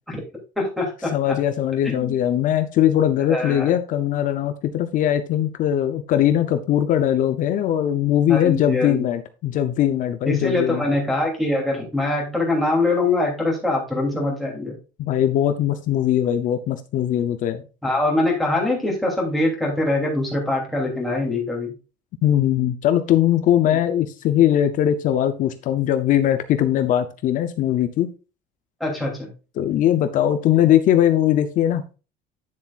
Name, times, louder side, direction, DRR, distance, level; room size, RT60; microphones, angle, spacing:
voice 1, 0.6-1.1 1.8-2.2 3.3-3.7 8.3-9.0 10.2-14.7 17.8-21.7 23.7-23.8 28.8-29.3, left 2 dB, ahead, -3 dB, 2.9 m, -23 dB
voice 2, 1.1-10.8 15.0-17.6 22.2-28.1 29.6-31.8, left 11 dB, 45° left, 9 dB, 0.6 m, -20 dB
9.8 x 7.1 x 2.4 m, 0.32 s
cardioid pair, 180°, 19 cm